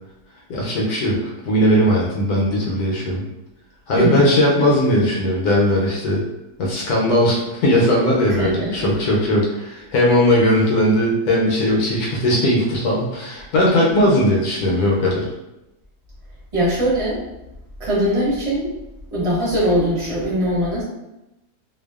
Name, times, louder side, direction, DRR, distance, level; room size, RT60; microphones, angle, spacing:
voice 1, 0.5-3.2 3.9-6.2 6.6-15.3, equal, 75° left, -3 dB, 1.0 m, -18 dB
voice 2, 3.9-4.3 8.4-8.7 16.5-17.2 17.8-18.7 19.1-20.8, equal, 30° right, -8 dB, 0.9 m, -21 dB
2.6 x 2.3 x 2.3 m, 0.94 s
omnidirectional pair, 1.8 m